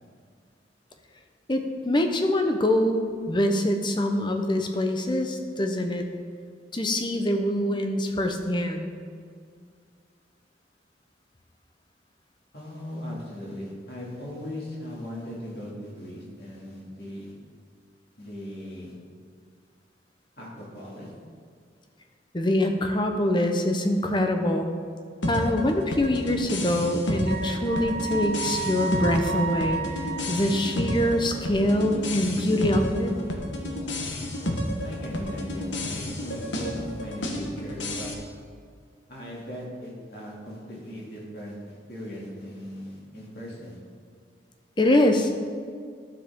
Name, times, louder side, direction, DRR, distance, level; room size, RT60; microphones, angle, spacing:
voice 1, 1.5-6.1 6.7-8.9 22.3-24.7 25.3-29.8 30.3-33.1 44.8-45.3, left 1 dB, 25° left, 5 dB, 0.7 m, -24 dB
voice 2, 12.5-17.3 18.2-18.9 20.4-21.1 34.8-38.1 39.1-43.8, equal, 55° left, -4 dB, 2.5 m, -38 dB
sound 1, 25.2-38.1, left 1 dB, 85° left, 1.3 m, -31 dB
Wind instrument woodwind instrument, 27.3-31.1, right 5 dB, 60° right, 1.5 m, -33 dB
12.0 x 7.2 x 3.7 m, 2.1 s
head